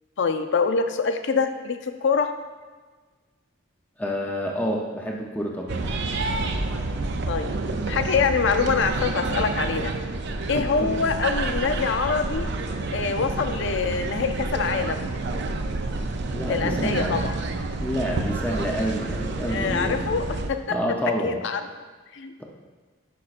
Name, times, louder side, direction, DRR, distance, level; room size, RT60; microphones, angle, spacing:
voice 1, 0.2-2.3 7.3-7.6 7.9-9.9 10.5-12.5 12.9-15.1 16.5-17.3 19.5-20.8 21.2-21.6 22.1-22.4, left 5 dB, 60° left, 8 dB, 0.5 m, -25 dB
voice 2, 4.0-5.8 10.5-10.9 16.3-17.2 17.8-20.0 20.7-21.4, equal, 10° left, -1 dB, 0.7 m, -28 dB
sound 1, 5.7-20.5, right 3 dB, 60° right, 0.5 m, -29 dB
10.5 x 5.9 x 2.5 m, 1.4 s
head